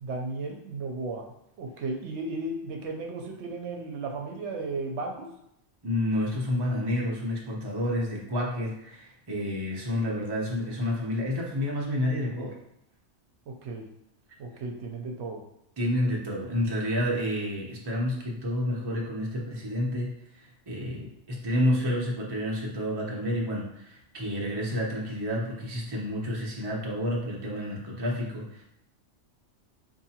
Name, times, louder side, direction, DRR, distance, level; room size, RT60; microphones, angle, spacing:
voice 1, 0.0-1.3 1.6-5.3 13.5-13.9 14.4-15.4 16.0-16.1, right 3 dB, 75° right, 2 dB, 0.9 m, -34 dB
voice 2, 5.8-12.5 15.8-20.1 20.4-28.6, left 1 dB, 25° right, -3 dB, 0.6 m, -29 dB
4.6 x 2.6 x 2.8 m, 0.77 s
omnidirectional pair, 1.2 m